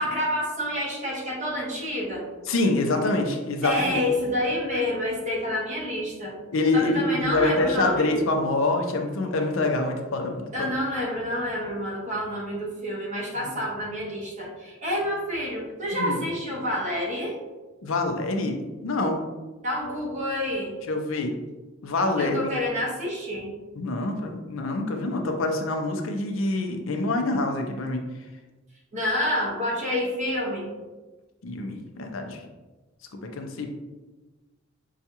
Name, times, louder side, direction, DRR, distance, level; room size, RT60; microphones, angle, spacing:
voice 1, 0.0-2.2 3.6-6.4 6.7-8.1 10.5-17.4 19.6-20.7 22.2-23.5 28.9-30.7, left 1 dB, 35° right, -4 dB, 1.1 m, -28 dB
voice 2, 2.5-4.0 6.5-10.7 15.9-16.2 17.8-19.2 20.9-21.3 21.8-22.5 23.8-28.1 31.4-32.4 33.2-33.7, left 2 dB, 80° left, 4 dB, 0.5 m, -26 dB
5.5 x 2.4 x 2.8 m, 1.2 s
head